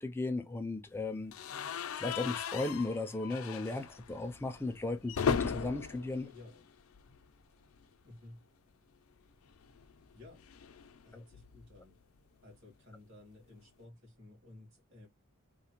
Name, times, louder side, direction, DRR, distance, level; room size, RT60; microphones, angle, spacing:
voice 1, 0.0-1.3 2.0-6.3, left 2 dB, 10° left, 0.4 m, -36 dB
sound 1, 1.3-7.3 7.6-8.1 9.5-11.8, left 7 dB, 90° left, 0.4 m, -38 dB
voice 2, 6.2-6.7 8.0-8.4 10.1-10.4 11.0-12.0 12.4-15.1, left 2 dB, 60° right, 1.7 m, -55 dB
3.1 x 2.1 x 2.9 m
head